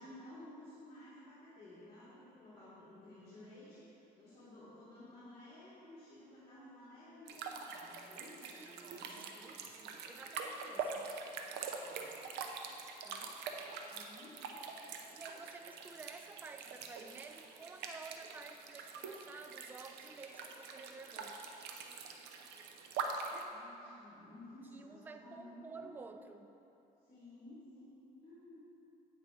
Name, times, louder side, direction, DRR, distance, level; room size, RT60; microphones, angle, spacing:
voice 1, 0.0-9.2 11.8-12.2 13.9-14.4 23.5-25.9 27.0-28.7, left 1 dB, 30° left, -10 dB, 1.9 m, -55 dB
sound 1, 7.3-23.4, right 5 dB, 85° right, 0.7 m, -45 dB
voice 2, 8.5-11.1 13.0-13.4 15.1-21.4 24.7-26.5, right 4 dB, 10° right, 7 dB, 0.3 m, -52 dB
8.8 x 4.6 x 5.0 m, 2.9 s
cardioid pair, 110°, 17 cm